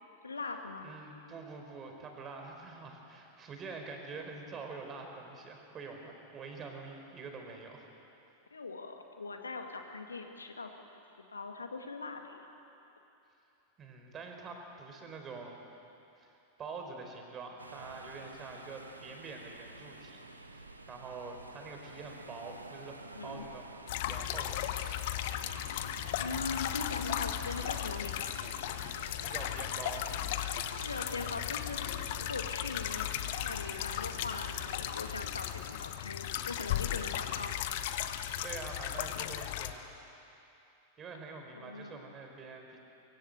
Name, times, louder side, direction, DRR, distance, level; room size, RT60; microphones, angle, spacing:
voice 1, 0.2-0.9 8.5-10.7 11.3-12.4 23.1-23.4 26.2-28.4 30.8-33.1 33.4-37.7 41.5-42.0, left 4 dB, 75° left, 4 dB, 2.2 m, -41 dB
voice 2, 0.8-7.9 13.8-15.6 16.2-20.2 20.5-23.7 24.1-25.4 29.2-30.2 38.4-39.9 41.0-42.8, right 4 dB, 25° right, 3 dB, 4.7 m, -46 dB
sound 1, 17.6-35.3, right 2 dB, 80° right, 1.6 m, -49 dB
sound 2, 23.9-39.7, left 12 dB, 50° left, 1.2 m, -36 dB
24.5 x 24.5 x 8.2 m, 2.9 s
figure-of-eight pair, 90°, 0 cm